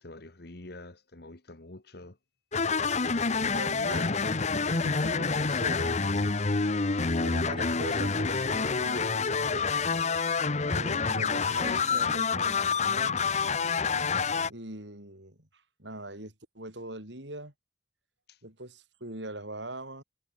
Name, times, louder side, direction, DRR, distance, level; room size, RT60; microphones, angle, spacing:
voice 1, 0.0-2.2 4.0-4.1 18.3-18.4, left 2 dB, 60° left, 1.7 m, -47 dB
sound 1, 2.5-14.5, left 4 dB, 40° left, 0.9 m, -27 dB
voice 2, 3.4-4.4 4.7-6.4 7.2-9.7 10.7-13.2 14.4-17.5 18.4-20.0, right 1 dB, 75° right, 7.3 m, -42 dB
head